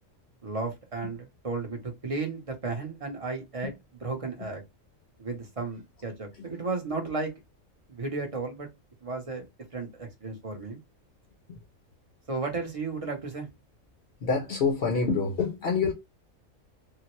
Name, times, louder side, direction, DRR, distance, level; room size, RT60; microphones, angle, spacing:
voice 1, 0.4-3.7 4.0-4.6 5.2-7.3 7.9-8.7 9.0-9.4 9.7-10.8 12.3-13.5, right 3 dB, 35° right, 0.6 m, -34 dB
voice 2, 14.2-15.9, left 5 dB, 55° left, 0.8 m, -27 dB
3.8 x 2.0 x 2.9 m
omnidirectional pair, 1.4 m